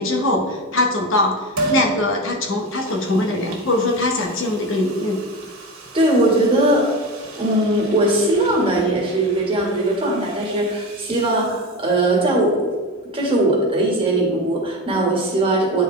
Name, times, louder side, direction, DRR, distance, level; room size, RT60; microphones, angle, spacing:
voice 1, 0.0-5.2, left 2 dB, 65° left, 1 dB, 1.1 m, -21 dB
Liquid, 1.6-1.9 2.5-12.1 12.4-12.5, right 3 dB, 85° right, 1.8 m, -34 dB
voice 2, 5.9-7.0 7.3-12.7 13.1-15.8, right 1 dB, 25° right, -3 dB, 1.6 m, -19 dB
9.9 x 4.4 x 3.3 m, 1.5 s
head